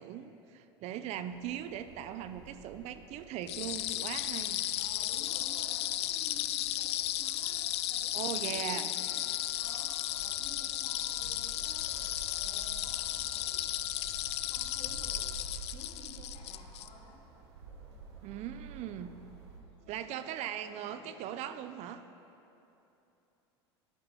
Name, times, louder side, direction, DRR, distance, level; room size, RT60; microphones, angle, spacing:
voice 1, 0.0-4.6 8.1-8.9 18.2-19.2 19.9-22.0, right 10 dB, 55° right, 11 dB, 0.6 m, -39 dB
sound 1, 1.3-19.6, right 5 dB, 80° right, 1.8 m, -51 dB
sound 2, 3.5-16.9, left 14 dB, 80° left, 0.4 m, -34 dB
voice 2, 4.8-11.9 12.3-13.7 14.2-17.2 19.6-21.2, left 3 dB, 45° left, -2 dB, 2.6 m, -54 dB
Car, 9.0-15.3, left 5 dB, 25° left, 1.2 m, -55 dB
12.0 x 8.8 x 5.4 m, 2.9 s
hypercardioid pair, 85°, 14 cm